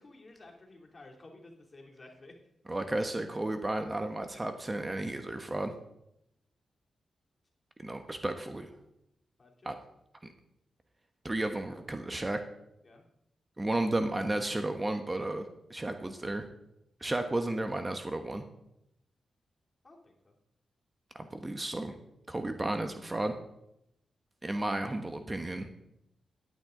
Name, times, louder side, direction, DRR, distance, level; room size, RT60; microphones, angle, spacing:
voice 1, 0.0-2.4 9.4-9.7 12.8-13.0 19.8-20.3, left 2 dB, 40° left, 0 dB, 3.1 m, -53 dB
voice 2, 2.7-5.7 7.8-8.7 9.6-9.7 11.2-12.4 13.6-15.4 15.7-16.5 17.0-18.4 21.2-22.0 22.3-23.4 24.4-25.7, right 1 dB, 25° right, 7 dB, 1.1 m, -33 dB
11.0 x 9.4 x 3.9 m, 0.81 s
cardioid pair, 50°, 0 cm